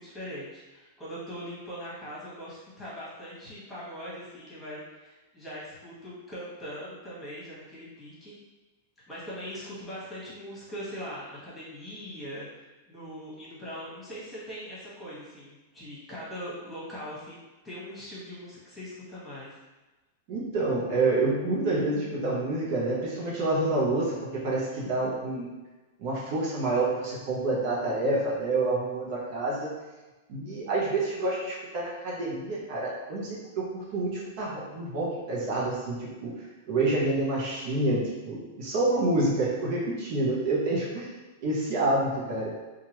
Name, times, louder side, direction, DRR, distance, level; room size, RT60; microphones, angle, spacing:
voice 1, 0.0-8.3 9.1-12.5 12.9-17.4 17.6-19.6, equal, 10° left, -9 dB, 1.4 m, -41 dB
voice 2, 20.3-25.5 26.0-29.7 30.3-36.3 36.7-41.1 41.4-42.5, right 2 dB, 55° right, -5 dB, 0.8 m, -28 dB
2.8 x 2.4 x 3.0 m, 1.2 s
hypercardioid pair, 115°, 0 cm